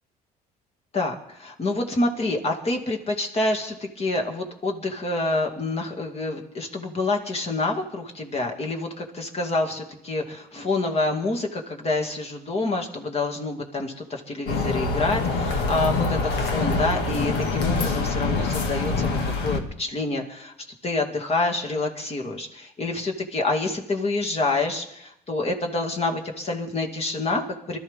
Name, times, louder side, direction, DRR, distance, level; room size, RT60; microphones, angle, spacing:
voice 1, 0.9-19.2 19.4-20.5 20.8-27.8, left 2 dB, 35° left, 2 dB, 2.4 m, -27 dB
sound 1, 14.5-19.6, left 3 dB, 80° left, 2.0 m, -25 dB
23.5 x 13.0 x 3.7 m, 0.80 s
cardioid pair, 110°, 17 cm